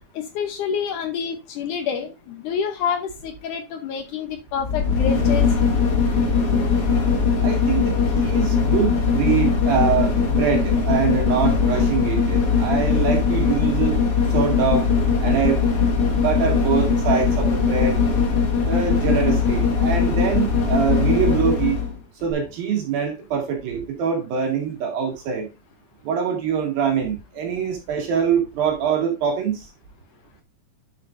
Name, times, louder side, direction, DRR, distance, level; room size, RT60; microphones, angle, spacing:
voice 1, 0.2-5.5, left 7 dB, 70° left, 6 dB, 2.2 m, -27 dB
sound 1, 4.5-21.9 22.3-22.4, left 5 dB, 50° left, 2.0 m, -20 dB
voice 2, 7.4-14.0 14.3-14.9 15.2-15.6 16.2-18.0 18.6-21.8 22.2-25.5 26.1-29.7, right 7 dB, 80° right, 0 dB, 4.0 m, -24 dB
10.5 x 7.6 x 2.6 m, 0.24 s
omnidirectional pair, 4.1 m